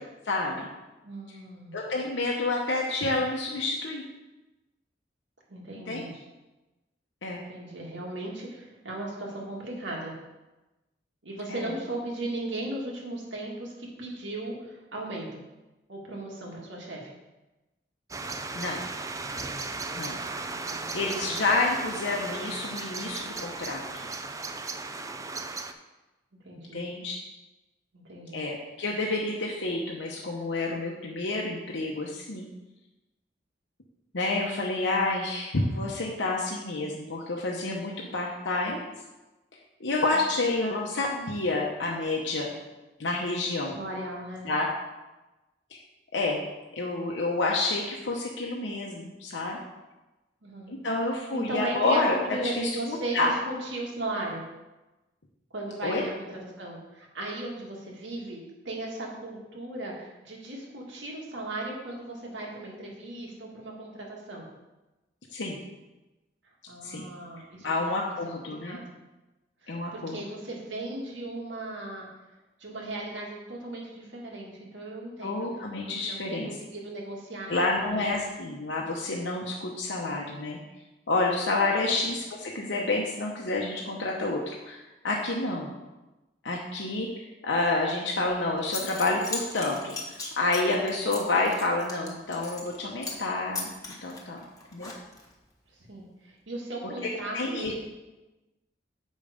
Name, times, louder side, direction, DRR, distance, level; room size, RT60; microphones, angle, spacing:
voice 1, 0.3-0.7 1.7-4.0 5.9-6.0 7.2-7.4 11.5-11.7 18.5-18.8 19.9-20.2 20.9-23.8 26.7-27.2 28.3-32.5 34.1-38.9 39.8-42.5 43.0-43.7 44.4-44.7 46.1-46.4 46.7-49.6 50.7-52.1 52.6-53.3 55.8-56.0 65.3-65.6 66.8-67.1 67.6-68.8 69.7-70.2 75.2-76.5 77.5-80.6 81.1-84.8 85.0-85.7 86.4-87.1 87.4-90.0 90.4-93.7 94.0-94.4 94.7-94.9 97.3-97.8, left 2 dB, 80° left, -2 dB, 0.9 m, -29 dB
voice 2, 1.0-1.8 5.5-6.1 7.3-10.1 11.2-15.4 15.9-17.1 20.3-20.9 26.4-26.8 27.9-28.5 43.7-44.5 50.4-50.7 51.3-54.4 55.5-58.4 58.7-64.5 66.7-67.8 68.6-69.0 69.6-72.1 72.6-75.5 76.0-78.0 95.7-97.8, right 2 dB, 80° right, -1 dB, 1.9 m, -37 dB
sound 1, 18.1-25.7, right 3 dB, 20° right, 0.4 m, -36 dB
Zipper (clothing) / Coin (dropping), 88.3-88.4 88.6-92.8 93.0-93.3 93.5-95.3, left 3 dB, 20° left, 1.3 m, -37 dB
7.3 x 5.4 x 5.1 m, 1.1 s
head